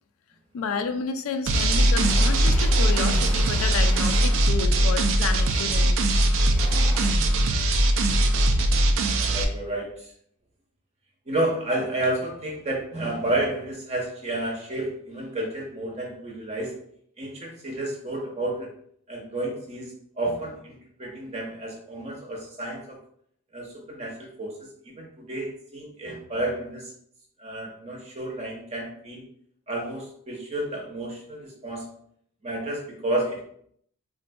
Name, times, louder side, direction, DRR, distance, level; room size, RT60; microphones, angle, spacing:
voice 1, 0.5-6.0, left 5 dB, 65° left, 7 dB, 0.3 m, -31 dB
sound 1, 1.5-9.4, right 1 dB, 60° right, 0.3 m, -21 dB
sound 2, 2.0-4.4 5.3-5.6 6.2-7.1, equal, 10° left, 0.6 m, -39 dB
voice 2, 9.1-10.1 11.3-16.8 17.2-18.7 19.1-23.0 23.5-24.6 24.8-26.9 27.4-29.2 29.7-31.9 32.4-33.4, right 1 dB, 30° right, 0 dB, 0.7 m, -31 dB
3.7 x 2.6 x 2.2 m, 0.65 s
head